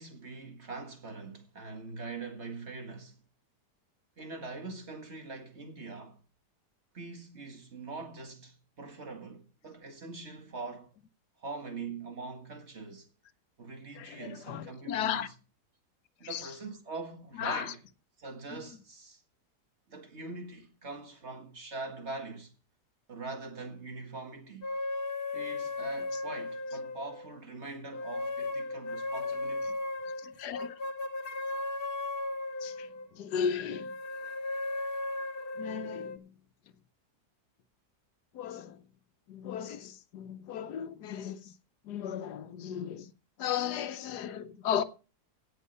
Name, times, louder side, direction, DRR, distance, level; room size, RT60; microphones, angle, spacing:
voice 1, 0.0-3.2 4.2-6.2 6.9-10.9 11.4-13.1 13.6-15.3 16.2-17.8 18.2-19.2 19.9-22.5 23.1-24.7 25.3-29.8, right 3 dB, 45° right, 2.0 m, -43 dB
voice 2, 14.0-15.3 16.3-16.4 17.4-17.7 30.2-30.7 32.6-32.9 33.1-33.9 35.6-36.3 38.3-38.8 39.3-41.5 41.9-43.1 43.4-44.8, left 8 dB, 80° left, 1.4 m, -35 dB
sound 1, 24.6-27.4 27.9-33.1 33.7-36.2, left 2 dB, 45° left, 0.9 m, -36 dB
17.0 x 6.4 x 5.5 m
omnidirectional pair, 1.7 m